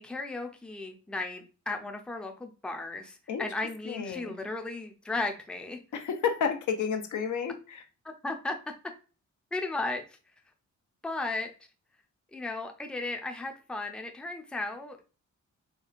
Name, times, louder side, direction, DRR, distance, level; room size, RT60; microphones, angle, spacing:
voice 1, 0.0-5.8 8.0-8.5 9.5-10.0 11.0-11.5 12.3-15.0, left 2 dB, 5° left, 0.4 m, -35 dB
voice 2, 3.9-4.3 5.9-7.8, left 6 dB, 85° left, 0.7 m, -31 dB
4.4 x 3.2 x 2.4 m
wide cardioid pair, 150°, 30 cm